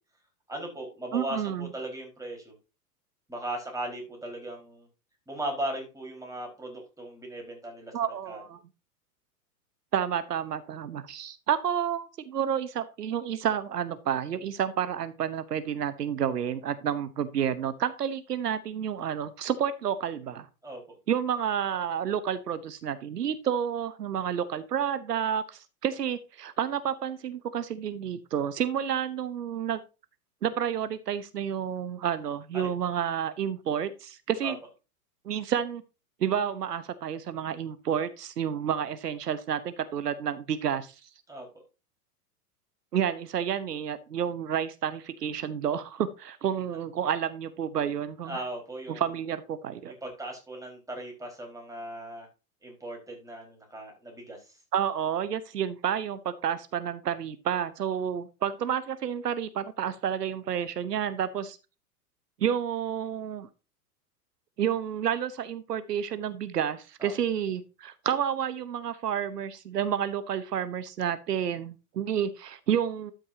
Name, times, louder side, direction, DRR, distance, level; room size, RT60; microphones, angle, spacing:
voice 1, 0.5-2.5 3.3-4.9 5.3-8.4 20.6-21.0 32.5-32.7 34.4-34.5 41.3-41.5 48.2-49.0 49.9-52.3 52.6-54.6 67.0-67.1, right 1 dB, 5° right, 0 dB, 4.4 m, -38 dB
voice 2, 1.1-1.7 7.9-8.6 9.9-20.5 21.1-29.8 30.4-34.6 35.2-35.8 36.2-40.9 42.9-48.4 48.9-49.9 54.7-61.6 62.4-63.5 64.6-73.1, right 9 dB, 80° right, 13 dB, 0.9 m, -30 dB
12.5 x 6.4 x 2.7 m, 0.29 s
hypercardioid pair, 100°, 47 cm